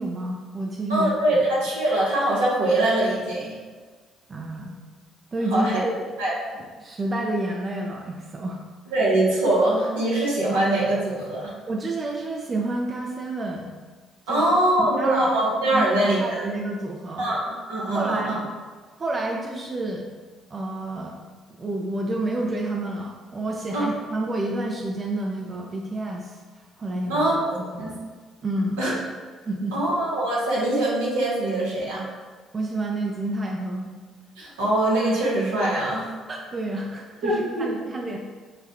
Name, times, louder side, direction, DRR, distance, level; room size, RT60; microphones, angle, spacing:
voice 1, 0.0-1.4 4.3-4.8 5.3-6.1 6.8-8.6 11.7-13.7 14.3-14.4 14.8-15.3 15.7-17.3 17.9-18.3 19.0-20.1 20.5-21.2 21.6-26.4 26.8-28.0 28.4-28.8 29.5-29.8 32.5-33.9 36.3-38.2, right 2 dB, 35° right, 0 dB, 0.5 m, -29 dB
voice 2, 0.9-3.5 5.5-5.8 6.2-6.3 8.9-11.5 14.3-16.5 17.2-18.4 23.7-23.9 27.1-27.9 28.8-28.9 29.7-32.0 34.4-36.1 37.2-37.9, right 1 dB, 80° right, -6 dB, 1.1 m, -23 dB
5.7 x 2.3 x 2.8 m, 1.4 s
hypercardioid pair, 50°, 0 cm